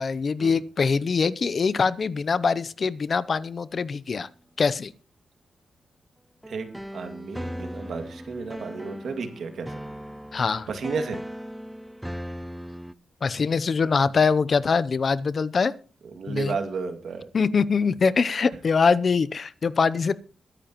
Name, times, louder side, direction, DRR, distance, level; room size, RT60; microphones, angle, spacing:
voice 1, 0.0-4.3 4.6-4.9 10.3-10.7 13.2-15.7 16.3-16.6 17.3-20.1, left 5 dB, 45° left, 17 dB, 0.6 m, -23 dB
sound 1, 6.4-12.9, equal, 5° right, 0.5 m, -38 dB
voice 2, 6.4-9.7 10.7-11.2 16.0-17.2, right 5 dB, 70° right, 7 dB, 2.1 m, -33 dB
22.0 x 10.0 x 3.0 m, 0.39 s
wide cardioid pair, 120°, 0 cm